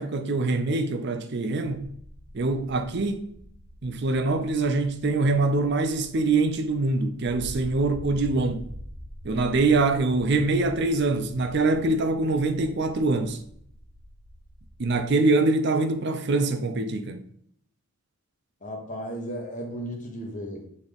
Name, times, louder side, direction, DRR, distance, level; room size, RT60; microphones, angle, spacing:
voice 1, 0.0-1.9 2.3-3.3 3.8-8.7 9.2-13.4 14.8-17.2, right 3 dB, 55° right, 0.5 m, -24 dB
sound 1, 1.6-15.1, equal, 35° right, 2.0 m, -45 dB
voice 2, 18.6-20.7, equal, 35° left, 1.3 m, -35 dB
6.9 x 4.1 x 3.5 m
head